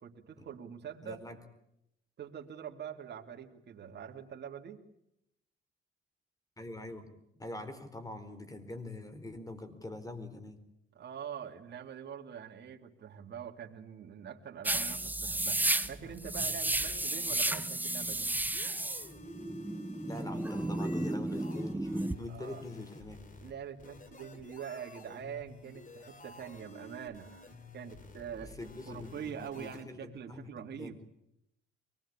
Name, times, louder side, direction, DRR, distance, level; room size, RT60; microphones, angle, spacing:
voice 1, 0.0-1.2 2.2-4.9 10.9-18.4 22.3-22.6 23.4-28.5 28.9-31.0, right 8 dB, 60° right, 2 dB, 2.5 m, -44 dB
voice 2, 1.0-1.4 6.6-10.6 20.0-23.2 28.4-31.0, left 2 dB, 15° left, 11 dB, 4.3 m, -44 dB
sound 1, 14.6-22.1, right 1 dB, 10° right, 1.2 m, -33 dB
sound 2, 15.7-29.8, left 2 dB, 40° left, 4.3 m, -52 dB
24.0 x 20.5 x 8.6 m, 0.80 s
cardioid pair, 90°, 20 cm